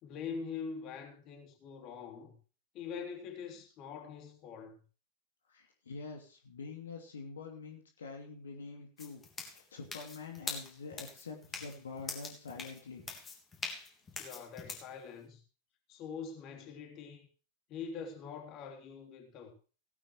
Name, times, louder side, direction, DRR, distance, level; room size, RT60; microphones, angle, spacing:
voice 1, 0.0-2.3 2.7-4.8 14.2-15.4 15.9-17.3 17.7-19.5, left 6 dB, 35° left, 3.1 m, -44 dB
voice 2, 5.5-9.2 9.5-13.1, left 4 dB, 65° left, 2.7 m, -46 dB
sound 1, 9.0-14.9, left 4 dB, 20° left, 3.2 m, -43 dB
17.5 x 12.0 x 3.1 m
figure-of-eight pair, 90°, 0 cm